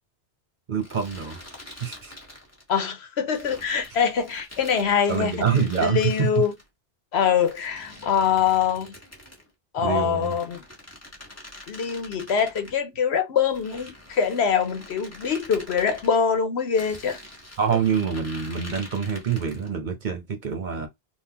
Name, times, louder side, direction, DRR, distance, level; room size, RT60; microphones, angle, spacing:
voice 1, 0.7-1.4 1.8-2.1 5.1-6.4 9.8-10.3 17.6-20.9, right 6 dB, 50° right, 1.0 m, -26 dB
sound 1, 0.8-2.7 3.3-6.6 7.4-9.5 10.1-12.8 13.4-16.2 16.8-19.7, left 1 dB, 15° left, 1.4 m, -45 dB
voice 2, 2.7-5.3 5.8-6.5 7.1-8.9 9.7-10.6 11.7-17.2, left 7 dB, 90° left, 1.1 m, -24 dB
3.7 x 2.6 x 2.8 m
omnidirectional pair, 1.1 m